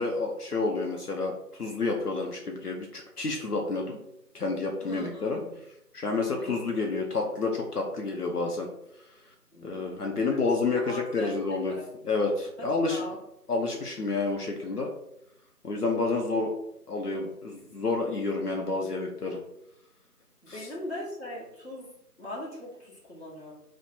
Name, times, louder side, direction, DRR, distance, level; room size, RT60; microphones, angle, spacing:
voice 1, 0.0-4.0 4.3-5.4 5.9-8.7 9.6-11.8 12.0-13.0 13.5-14.9 15.6-16.5 16.9-19.4 20.5-20.7, left 3 dB, 70° left, 1 dB, 0.7 m, -29 dB
voice 2, 4.8-5.6 6.1-6.7 9.5-10.0 10.7-11.4 11.7-11.9 12.6-13.2 20.4-21.9 22.2-23.5, left 1 dB, 40° left, -7 dB, 1.3 m, -40 dB
3.1 x 2.1 x 4.2 m, 0.80 s
figure-of-eight pair, 175°, 49 cm